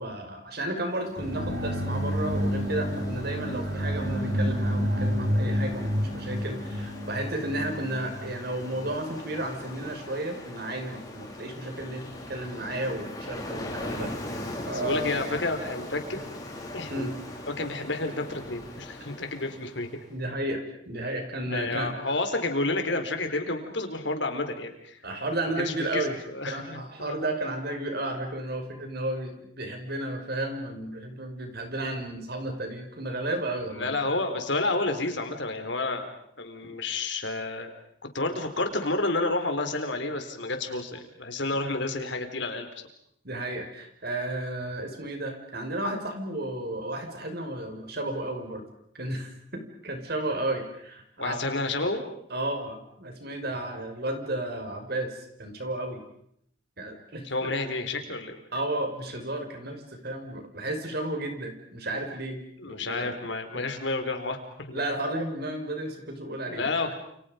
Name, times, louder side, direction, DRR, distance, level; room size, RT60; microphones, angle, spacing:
voice 1, 0.0-14.4 14.6-15.1 16.9-17.1 20.1-22.0 25.0-26.2 26.5-34.1 41.7-41.8 43.2-48.6 48.9-51.4 52.3-56.0 56.8-57.3 58.5-62.4 62.6-63.2 63.5-63.7 64.7-66.7, right 1 dB, 55° right, 4 dB, 5.8 m, -33 dB
Ocean, 0.9-20.0, left 1 dB, 20° left, 5.8 m, -41 dB
sound 1, 1.2-8.9, equal, 85° right, 6.0 m, -29 dB
voice 2, 14.7-16.3 16.7-17.1 17.5-19.9 21.4-25.0 25.6-27.2 33.8-36.1 36.4-37.7 38.1-42.7 51.2-52.0 57.2-58.4 62.6-64.4 64.7-64.8 66.5-66.9, left 2 dB, 70° left, 6 dB, 4.3 m, -30 dB
30.0 x 29.5 x 5.3 m, 0.70 s
head